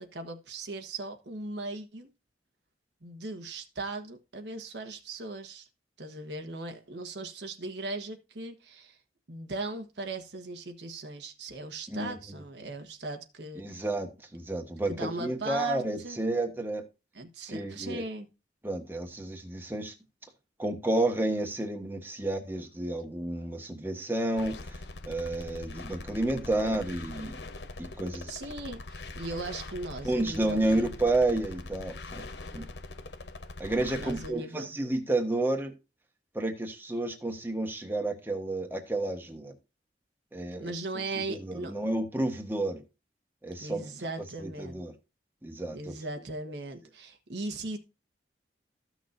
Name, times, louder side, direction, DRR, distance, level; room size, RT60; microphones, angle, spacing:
voice 1, 0.0-2.1 3.0-5.7 6.0-9.0 9.3-13.8 14.9-16.2 17.1-18.3 28.3-30.8 34.0-34.7 40.6-41.7 43.6-44.8 45.7-47.8, right 2 dB, 80° right, 1.4 m, -38 dB
voice 2, 13.6-16.8 17.5-18.0 18.6-19.9 20.6-24.8 25.1-27.4 27.8-28.3 30.0-32.2 32.5-32.6 33.6-35.7 36.3-39.5 40.3-40.7 41.3-42.8 43.4-43.8 44.4-44.9 45.4-45.9, right 2 dB, 10° right, 1.4 m, -31 dB
sound 1, 24.4-34.3, left 2 dB, 75° left, 0.9 m, -42 dB
14.5 x 6.2 x 2.7 m
head